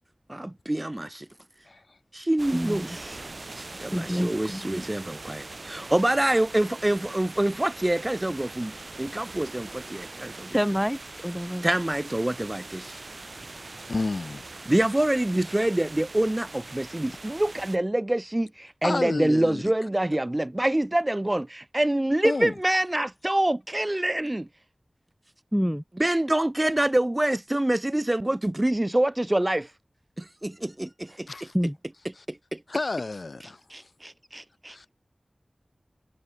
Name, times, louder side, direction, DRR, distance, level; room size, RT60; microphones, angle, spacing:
voice 1, 0.3-1.3 2.1-3.2 3.6-10.6 11.6-13.0 14.7-24.5 26.0-29.7 30.2-31.3 32.3-32.6 33.7-34.9, right 1 dB, 25° right, 0.4 m, -26 dB
sound 1, 2.4-17.8, right 2 dB, 65° right, 1.9 m, -42 dB
voice 2, 2.5-3.0 3.9-4.7 10.5-11.7 25.5-25.8 30.8-30.9 31.5-31.8, equal, ahead, 0.8 m, -27 dB
voice 3, 13.9-14.4 18.8-19.6 22.2-22.5 31.3-31.5 32.7-33.6 34.7-34.8, left 3 dB, 70° left, 1.0 m, -30 dB
wide cardioid pair, 60°, 0 cm